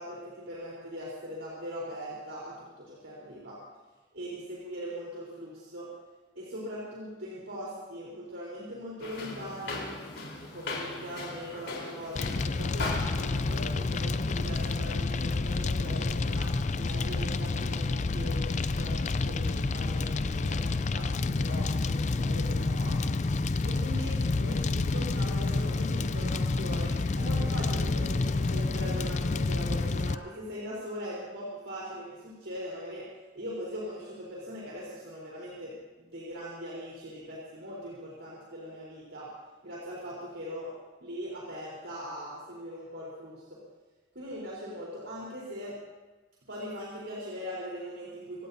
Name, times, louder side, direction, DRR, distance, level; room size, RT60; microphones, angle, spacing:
voice 1, 0.0-3.6 4.1-5.9 6.4-9.9 10.5-23.0 23.6-33.0 33.3-39.3 39.6-40.7 41.0-43.6 44.1-45.8 46.5-48.5, equal, 75° right, -6 dB, 4.0 m, -40 dB
sound 1, 9.0-14.1, left 2 dB, 75° left, 4.1 m, -39 dB
Fire, 12.1-30.1, left 3 dB, 40° left, 0.4 m, -29 dB
26.0 x 16.5 x 2.8 m, 1.2 s
head